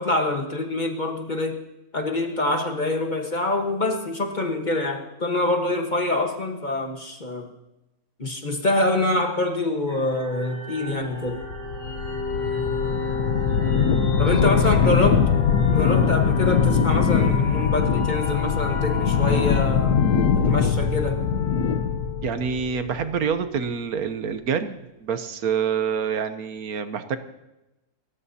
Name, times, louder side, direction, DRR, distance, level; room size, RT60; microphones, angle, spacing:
voice 1, 0.0-1.6 1.9-7.5 8.2-11.4 14.2-15.2 15.7-20.0 20.3-21.2, left 2 dB, 30° left, 3 dB, 1.3 m, -25 dB
sound 1, 9.9-19.6, left 4 dB, 50° left, 7.8 m, -33 dB
sound 2, 11.3-23.3, left 6 dB, 85° left, 1.4 m, -22 dB
voice 2, 14.2-14.5 14.7-15.1 22.2-27.2, right 7 dB, 70° right, 10 dB, 1.3 m, -27 dB
28.0 x 14.0 x 2.8 m, 0.95 s
omnidirectional pair, 1.6 m